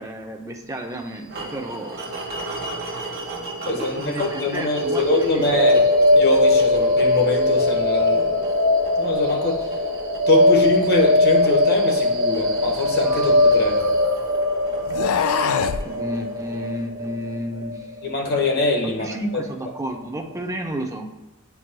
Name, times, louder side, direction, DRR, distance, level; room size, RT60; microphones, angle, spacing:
voice 1, 0.0-2.0 4.0-5.1 5.3-5.5 15.8-17.9 19.0-21.1, right 1 dB, 15° right, 3 dB, 0.6 m, -31 dB
sound 1, 1.3-17.4, right 2 dB, 45° right, 1.2 m, -36 dB
voice 2, 3.6-5.9 6.1-8.4 9.0-9.7 10.3-13.8 18.0-19.4, left 2 dB, 50° left, 0 dB, 1.1 m, -23 dB
sound 2, 4.8-18.8, left 2 dB, 75° right, 1.0 m, -20 dB
sound 3, 12.6-14.1 14.8-15.9, left 6 dB, 75° left, 0.4 m, -25 dB
9.8 x 4.6 x 2.2 m, 1.0 s
head